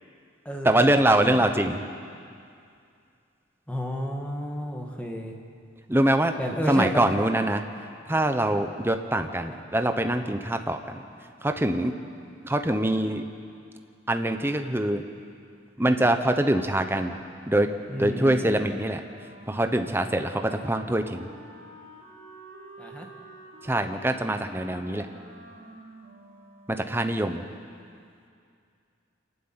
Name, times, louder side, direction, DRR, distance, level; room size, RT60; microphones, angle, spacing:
voice 1, 0.6-1.8 5.9-6.3 6.7-7.6 8.1-11.0 11.4-11.9 12.4-13.2 14.1-15.0 15.8-17.1 17.5-17.7 17.9-19.0 19.5-21.3 23.6-25.1 26.7-27.4, right 1 dB, 10° right, 6 dB, 0.9 m, -24 dB
voice 2, 3.7-5.3 6.4-7.1 15.8-16.1 17.9-18.8 22.8-23.1, equal, 5° left, 1 dB, 1.8 m, -31 dB
Wind instrument woodwind instrument, 18.9-27.2, right 1 dB, 40° right, 3.8 m, -49 dB
26.5 x 12.0 x 8.9 m, 2.4 s
head